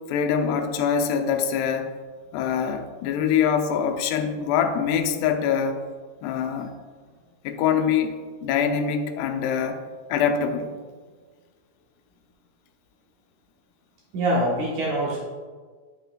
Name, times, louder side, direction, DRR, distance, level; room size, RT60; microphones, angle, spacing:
voice 1, 0.1-1.9 2.3-5.8 6.2-6.7 7.4-9.8 10.1-10.7, left 7 dB, 85° left, 6 dB, 2.6 m, -24 dB
voice 2, 14.1-15.2, right 1 dB, 70° right, -4 dB, 1.9 m, -24 dB
9.1 x 7.9 x 2.2 m, 1.5 s
omnidirectional pair, 4.7 m